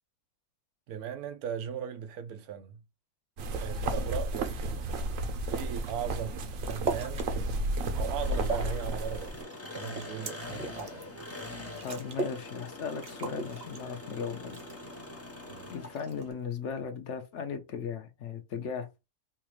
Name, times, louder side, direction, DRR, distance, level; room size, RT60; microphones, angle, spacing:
voice 1, 0.9-2.8 3.6-4.9 5.5-7.3 8.0-11.1 15.5-15.7, right 8 dB, 90° right, 1.2 m, -38 dB
sound 1, 3.4-9.4, right 1 dB, 70° right, 1.0 m, -33 dB
sound 2, 5.8-5.9 6.3-7.3 7.7-8.8 9.2-11.0 11.4-11.5 11.7-12.4 12.7-12.8 13.0-14.1 14.5-15.1 15.9-16.4, right 4 dB, 40° right, 0.8 m, -37 dB
Engine, 8.2-16.3, left 2 dB, 20° left, 0.4 m, -44 dB
voice 2, 11.8-14.6 15.7-18.9, left 6 dB, 60° left, 0.9 m, -37 dB
4.0 x 2.4 x 3.0 m
omnidirectional pair, 1.6 m